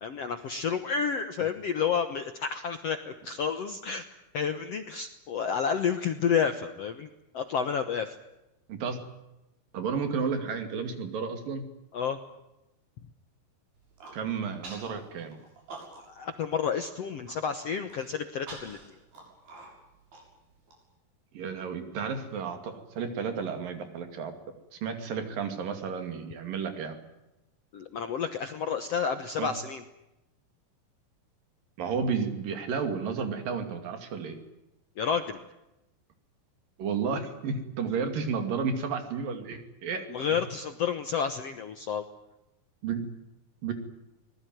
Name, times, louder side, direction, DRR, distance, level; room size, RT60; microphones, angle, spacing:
voice 1, 0.0-4.0 4.3-7.1 7.3-8.1 11.9-12.2 16.1-18.8 27.7-29.8 35.0-35.4 40.1-42.0, left 6 dB, 65° left, 9 dB, 1.6 m, -30 dB
voice 2, 9.7-11.6 14.1-15.4 21.3-24.3 24.7-27.0 29.4-29.5 31.8-34.4 36.8-40.4 42.8-43.1 43.6-43.7, right 5 dB, 65° right, 7 dB, 4.1 m, -32 dB
Human voice, 13.8-14.2 14.6-14.9 15.3-16.2 16.5-16.6 17.0-17.3 17.9-20.7, right 3 dB, 90° right, 9.2 m, -46 dB
24.5 x 20.0 x 9.3 m, 0.92 s
omnidirectional pair, 4.3 m